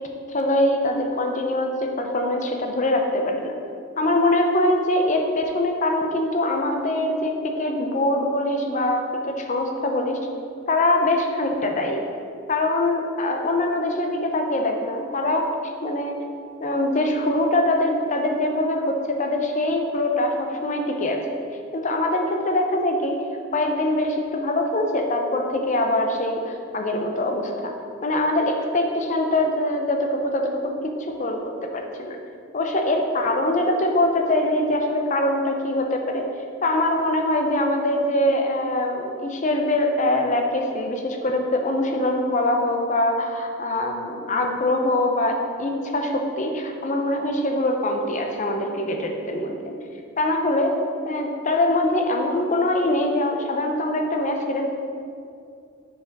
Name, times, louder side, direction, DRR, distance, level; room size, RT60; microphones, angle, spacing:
voice 1, 0.3-3.5 4.0-10.2 10.7-12.0 12.5-16.2 16.6-21.2 21.7-23.2 23.5-27.7 28.0-30.8 31.1-31.4 31.7-32.2 32.5-36.3 36.6-49.8 50.2-50.8 51.1-54.7, left 1 dB, 35° left, 3 dB, 0.6 m, -23 dB
5.1 x 4.8 x 4.6 m, 2.5 s
head